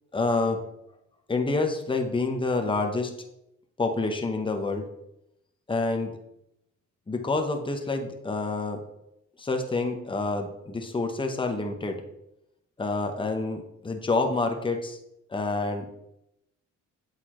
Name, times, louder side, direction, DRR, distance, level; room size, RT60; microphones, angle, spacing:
voice 1, 0.1-0.6 1.3-3.1 3.8-4.9 5.7-6.2 7.1-8.8 9.4-12.0 12.8-15.0 15.3-15.9, left 3 dB, 15° left, 4 dB, 0.8 m, -28 dB
8.1 x 4.1 x 3.1 m, 0.83 s
cardioid pair, 90°, 30 cm